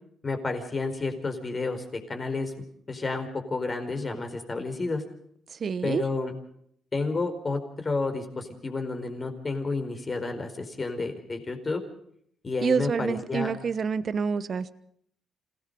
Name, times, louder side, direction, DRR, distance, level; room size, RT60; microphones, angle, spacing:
voice 1, 0.2-2.5 2.9-5.0 5.8-6.3 6.9-11.8 12.4-13.5, left 3 dB, 30° left, 6 dB, 4.6 m, -30 dB
voice 2, 5.6-6.0 12.6-14.7, right 6 dB, 45° right, 14 dB, 1.1 m, -27 dB
27.5 x 18.0 x 5.4 m, 0.66 s
cardioid pair, 90°, 0 cm